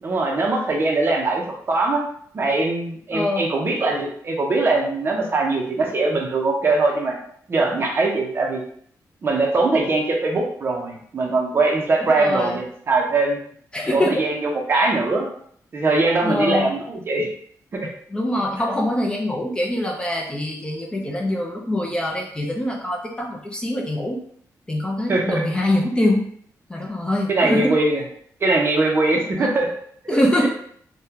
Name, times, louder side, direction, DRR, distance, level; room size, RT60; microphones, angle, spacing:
voice 1, 0.0-2.0 2.3-7.2 7.5-8.6 9.2-13.4 13.9-15.3 15.7-17.3 17.7-17.9 25.1-25.4 27.3-28.0 28.4-29.7 30.0-30.5, right 3 dB, 35° right, 1 dB, 0.6 m, -21 dB
voice 2, 3.1-3.4 12.1-12.6 13.7-14.2 16.2-16.7 18.1-24.2 24.7-26.3 26.7-27.7 29.4-29.5 30.1-30.5, left 1 dB, 15° left, -1 dB, 0.5 m, -23 dB
3.5 x 2.2 x 2.8 m, 0.62 s
wide cardioid pair, 150°, 6 cm